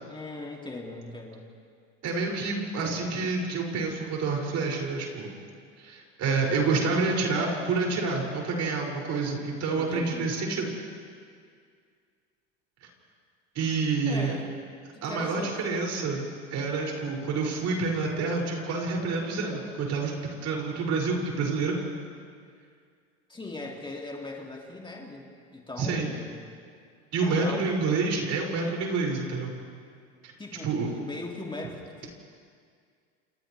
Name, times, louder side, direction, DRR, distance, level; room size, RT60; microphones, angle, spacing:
voice 1, 0.1-1.5 9.7-10.4 14.1-14.6 14.9-15.6 23.3-26.5 27.2-27.7 30.4-32.1, left 2 dB, 15° left, 0 dB, 2.7 m, -39 dB
voice 2, 2.0-5.3 5.8-10.7 13.5-14.3 15.0-16.2 16.5-20.1 20.4-21.7 25.8-26.1 27.1-29.5 30.2-30.3 30.6-30.9, right 4 dB, 50° right, -1 dB, 6.5 m, -28 dB
29.0 x 29.0 x 3.4 m, 2.1 s
hypercardioid pair, 80°, 34 cm